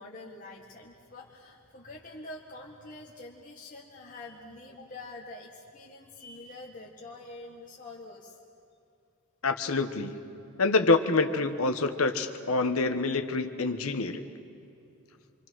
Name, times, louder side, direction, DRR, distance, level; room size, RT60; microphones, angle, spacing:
voice 1, 0.0-8.4, left 2 dB, 35° left, -3 dB, 1.7 m, -46 dB
voice 2, 9.4-10.2 10.6-14.2, left 3 dB, 75° left, 7 dB, 1.3 m, -26 dB
26.5 x 25.0 x 6.3 m, 2.7 s
head